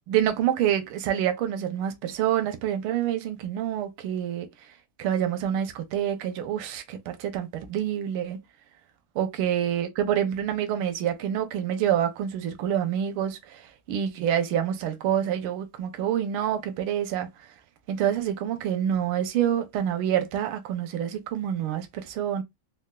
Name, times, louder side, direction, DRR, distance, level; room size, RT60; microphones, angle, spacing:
voice 1, 0.1-4.5 5.0-8.4 9.1-13.6 13.9-17.3 17.9-22.4, right 10 dB, 85° right, 1.5 m, -27 dB
4.1 x 2.1 x 2.2 m
omnidirectional pair, 2.3 m